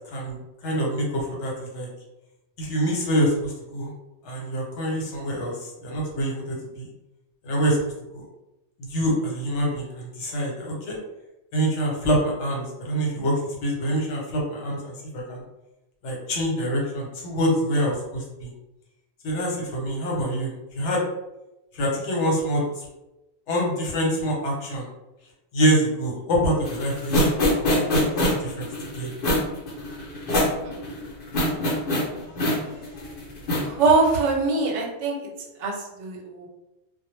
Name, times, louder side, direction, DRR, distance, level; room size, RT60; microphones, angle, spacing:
voice 1, 0.6-1.9 2.6-3.9 4.2-6.9 7.4-7.8 8.1-8.2 8.8-11.0 11.5-15.4 16.0-18.5 19.2-21.0 21.7-22.9 23.5-24.9 25.5-27.3 27.6-28.1 28.4-28.7 29.0-29.1, equal, 80° left, -2 dB, 1.1 m, -26 dB
sound 1, 26.7-34.3, left 1 dB, 55° left, 0.9 m, -24 dB
voice 2, 33.7-35.2 35.6-35.7 36.0-36.5, right 3 dB, 90° right, 1 dB, 0.9 m, -22 dB
2.1 x 2.0 x 3.1 m, 0.96 s
omnidirectional pair, 1.2 m